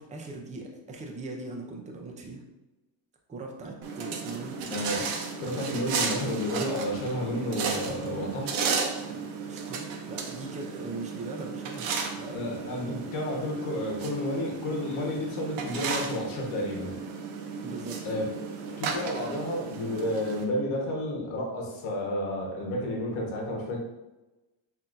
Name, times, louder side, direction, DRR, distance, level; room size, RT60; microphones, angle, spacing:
voice 1, 0.0-2.4 3.3-4.6 9.4-12.4 17.6-18.0, right 3 dB, 15° right, 1 dB, 0.4 m, -40 dB
sound 1, 3.8-20.4, right 5 dB, 70° right, 0.8 m, -34 dB
voice 2, 4.7-5.1 5.4-8.6 12.3-17.0 18.0-18.2 18.8-23.8, left 1 dB, 80° left, -1 dB, 1.3 m, -31 dB
5.7 x 2.7 x 2.5 m, 1.0 s
cardioid pair, 155°, 48 cm